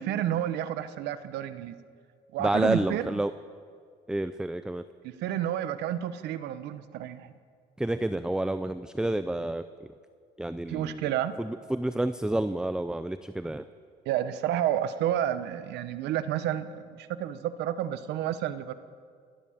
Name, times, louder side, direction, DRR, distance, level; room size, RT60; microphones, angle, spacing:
voice 1, 0.0-1.8 2.3-3.2 5.0-7.3 10.7-11.3 14.0-18.7, right 11 dB, 85° right, 12 dB, 1.1 m, -30 dB
voice 2, 2.4-3.3 4.1-4.8 7.8-9.6 10.4-11.0 11.4-13.6, right 1 dB, 5° right, 12 dB, 0.5 m, -29 dB
29.5 x 12.5 x 7.3 m, 2.1 s
cardioid pair, 110°, 17 cm